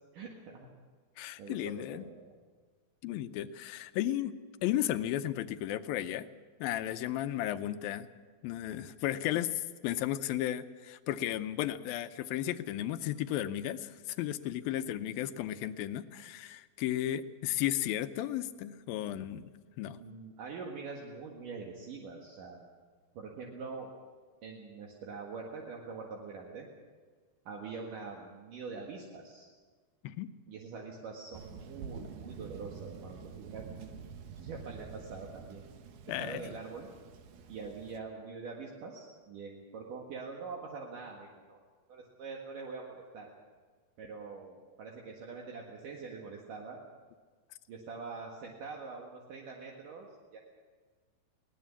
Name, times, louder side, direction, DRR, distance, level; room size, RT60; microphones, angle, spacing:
voice 1, 0.1-0.7 1.4-2.2 20.0-22.7 23.1-23.9 24.4-26.7 27.5-29.5 30.5-33.7 34.2-35.7 36.2-36.9 37.5-41.6 41.9-43.3 44.0-46.8 47.7-50.4, right 4 dB, 65° right, -1 dB, 3.3 m, -44 dB
voice 2, 1.2-2.0 3.0-4.3 4.6-6.3 6.6-8.1 8.4-20.0 30.0-30.3 36.1-36.4, left 12 dB, 85° left, 11 dB, 2.6 m, -34 dB
Thunder, 31.3-38.0, right 6 dB, 80° right, 3.1 m, -47 dB
21.5 x 18.5 x 7.2 m, 1.5 s
omnidirectional pair, 4.2 m